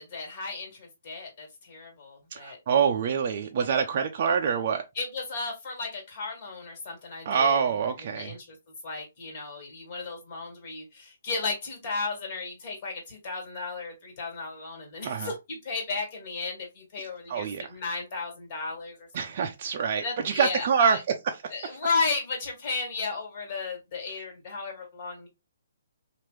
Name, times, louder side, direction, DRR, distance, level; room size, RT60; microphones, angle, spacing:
voice 1, 0.0-2.6 5.0-7.7 8.1-8.6 8.8-19.3 20.0-21.0 21.5-25.3, left 4 dB, 40° left, 1.8 m, -34 dB
voice 2, 2.3-4.9 7.3-8.4 15.0-15.3 17.3-17.7 19.1-21.0 21.2-21.5, right 6 dB, 45° right, 0.4 m, -26 dB
3.0 x 2.5 x 3.1 m
hypercardioid pair, 145°, 0 cm